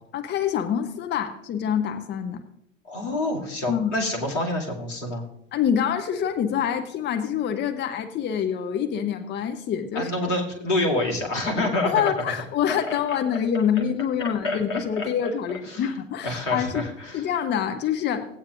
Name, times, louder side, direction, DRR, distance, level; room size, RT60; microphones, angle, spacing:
voice 1, 0.1-2.4 3.7-3.9 5.5-10.3 11.8-16.8 17.1-18.3, left 8 dB, 30° left, 8 dB, 0.8 m, -26 dB
voice 2, 2.9-5.2 9.9-12.3 12.7-13.2 14.2-15.1 15.6-15.9 16.2-17.3, left 1 dB, 75° left, 0 dB, 2.4 m, -27 dB
17.0 x 8.8 x 2.5 m, 0.78 s
figure-of-eight pair, 80°, 37 cm